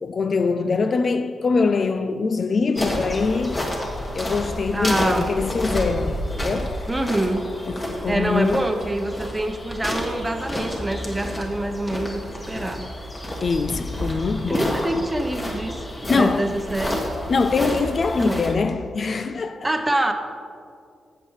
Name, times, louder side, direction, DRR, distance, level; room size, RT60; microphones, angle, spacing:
voice 1, 0.0-3.7 4.1-6.8 7.7-8.7 13.4-15.0 16.1-16.6 17.3-19.7, left 4 dB, 50° left, 0.3 m, -23 dB
sound 1, 2.8-18.5, left 1 dB, 30° left, 1.7 m, -30 dB
voice 2, 4.7-5.3 6.9-7.5 8.1-12.2 12.5-12.9 14.5-17.0 18.2-18.4 19.6-20.1, right 1 dB, 15° right, 0.8 m, -25 dB
14.5 x 6.9 x 3.2 m
cardioid pair, 80°, 0 cm